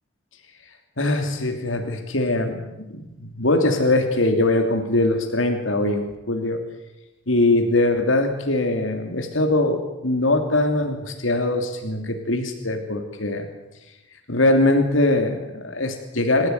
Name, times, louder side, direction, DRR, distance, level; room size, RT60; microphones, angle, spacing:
voice 1, 1.0-6.6 7.3-13.5 14.3-16.5, left 2 dB, 85° left, 5 dB, 3.0 m, -22 dB
27.5 x 16.0 x 9.6 m, 0.99 s
head